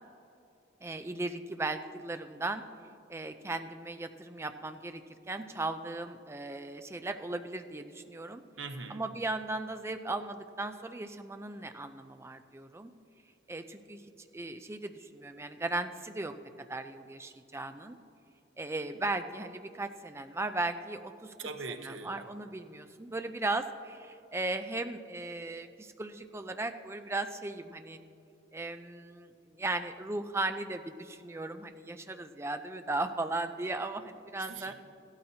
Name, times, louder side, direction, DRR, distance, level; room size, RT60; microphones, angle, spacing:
voice 1, 0.8-2.6 3.1-8.4 8.9-12.9 13.5-14.0 14.3-16.3 16.6-18.0 18.6-21.3 21.8-28.0 28.5-34.7, right 2 dB, 15° right, 8 dB, 0.4 m, -37 dB
voice 2, 8.6-9.1 21.4-22.2 34.4-34.7, right 4 dB, 85° right, 6 dB, 1.0 m, -41 dB
15.5 x 13.0 x 2.8 m, 2.7 s
head